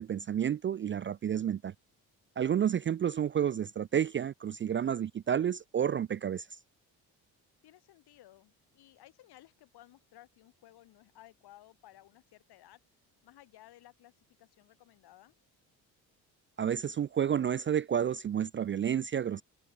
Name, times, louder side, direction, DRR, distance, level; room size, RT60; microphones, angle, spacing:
voice 1, 0.0-1.7 2.4-6.5 16.6-19.4, right 9 dB, 30° right, 0.4 m, -30 dB
voice 2, 7.6-12.8 13.2-15.4, left 15 dB, 75° left, 3.0 m, -58 dB
cardioid pair, 85°, 39 cm